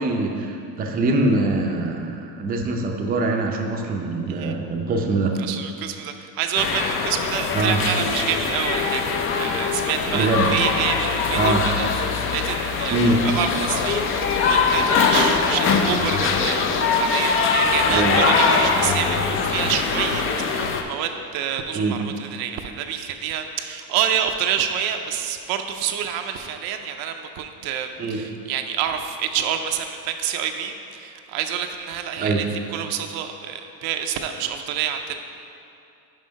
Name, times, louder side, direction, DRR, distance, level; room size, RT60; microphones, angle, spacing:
voice 1, 0.0-5.4 7.5-7.8 10.1-10.5 11.3-11.6 12.9-13.2 17.9-18.2 21.7-22.0 28.0-28.2 32.2-32.4, right 2 dB, 25° right, 1 dB, 0.5 m, -23 dB
voice 2, 5.4-14.1 14.3-16.6 16.9-20.2 20.5-32.5 32.7-35.1, right 9 dB, 65° right, 6 dB, 0.6 m, -28 dB
sound 1, 6.6-20.8, left 5 dB, 35° left, 0.5 m, -22 dB
5.7 x 5.4 x 5.1 m, 2.6 s
cardioid pair, 145°, 39 cm